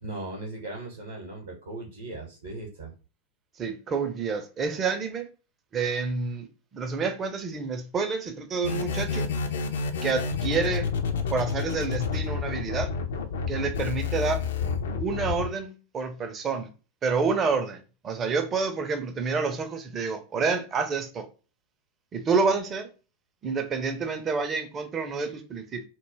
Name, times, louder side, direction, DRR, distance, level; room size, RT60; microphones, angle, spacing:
voice 1, 0.0-2.9, right 2 dB, 65° right, 0.7 m, -38 dB
voice 2, 3.6-5.3 5.7-6.5 6.7-9.3 10.0-10.9 11.3-12.9 13.5-14.4 15.0-16.7 17.0-21.3 22.1-22.9 23.4-25.8, right 4 dB, 25° right, 0.4 m, -28 dB
sound 1, 8.6-15.5, left 5 dB, 60° left, 0.3 m, -29 dB
2.2 x 2.0 x 3.0 m
figure-of-eight pair, 90°, 0 cm